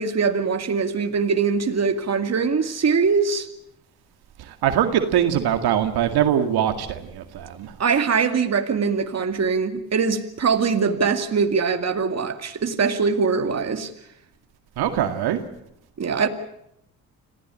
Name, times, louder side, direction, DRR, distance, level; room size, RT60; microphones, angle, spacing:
voice 1, 0.0-3.5 7.8-13.9 16.0-16.3, right 5 dB, 45° right, 2.3 m, -22 dB
voice 2, 4.4-7.7 14.8-15.4, right 10 dB, 75° right, 2.1 m, -22 dB
25.5 x 16.0 x 8.9 m
cardioid pair, 80°, 38 cm